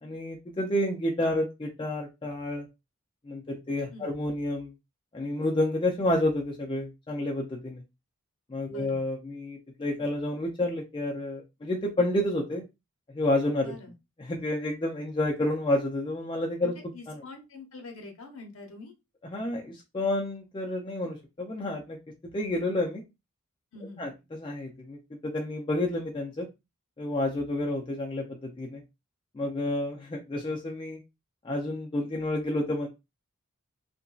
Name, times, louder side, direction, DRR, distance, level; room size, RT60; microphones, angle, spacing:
voice 1, 0.0-2.7 3.2-4.7 5.1-7.8 8.5-12.7 13.1-13.7 14.2-16.7 17.1-17.2 19.3-22.0 22.2-23.0 24.0-26.5 27.0-28.8 29.3-31.0 31.4-32.9, left 1 dB, 20° left, 0 dB, 0.4 m, -30 dB
voice 2, 8.7-9.0 13.6-13.9 16.6-18.9 23.7-24.0, left 3 dB, 70° left, 3 dB, 0.9 m, -45 dB
2.8 x 2.5 x 2.3 m, 0.24 s
head